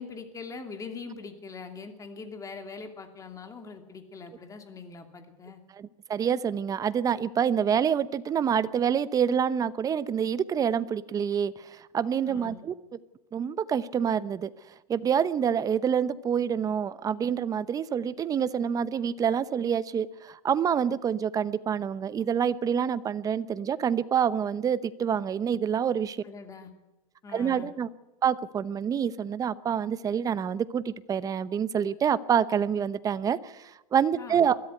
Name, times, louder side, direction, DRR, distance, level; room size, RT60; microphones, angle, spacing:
voice 1, 0.0-5.6 12.3-12.6 26.2-26.7 27.2-27.7 34.2-34.5, left 4 dB, 15° left, 6 dB, 2.6 m, -42 dB
voice 2, 5.8-12.7 13.3-14.5 14.9-26.2 27.3-27.9 28.2-34.6, right 8 dB, 20° right, 16 dB, 0.8 m, -27 dB
22.0 x 14.0 x 9.3 m, 1.0 s
supercardioid pair, 140°, 19 cm